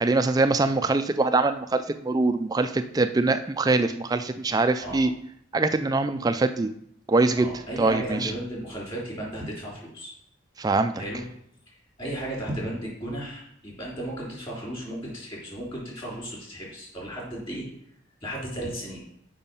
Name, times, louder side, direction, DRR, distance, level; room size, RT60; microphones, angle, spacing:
voice 1, 0.0-5.1 5.5-6.7 7.1-7.5 7.8-8.3 10.6-10.9, right 3 dB, 20° right, 10 dB, 0.3 m, -23 dB
voice 2, 7.4-10.1 11.0-11.2 11.7-17.7 18.2-19.0, right 1 dB, 25° left, -4 dB, 3.4 m, -35 dB
7.2 x 5.2 x 5.5 m, 0.71 s
head